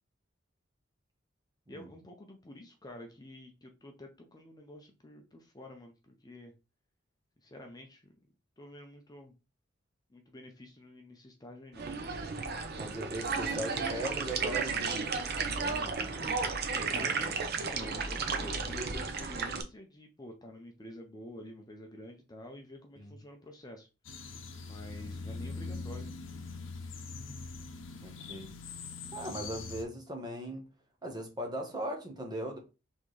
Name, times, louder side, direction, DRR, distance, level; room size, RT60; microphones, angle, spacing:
voice 1, 1.7-6.5 7.4-8.1 8.6-9.3 10.1-12.1 15.5-16.3 16.7-23.9 24.6-26.1, left 1 dB, 20° left, 0.6 m, -49 dB
sound 1, 11.7-19.6, right 4 dB, 55° right, 0.7 m, -33 dB
voice 2, 12.8-14.8 16.9-17.3 23.0-23.2 28.0-28.5 29.1-30.7 31.0-32.6, right 1 dB, 20° right, 1.1 m, -38 dB
sound 2, 24.1-29.8, left 4 dB, 70° left, 0.7 m, -42 dB
4.3 x 3.5 x 3.2 m
head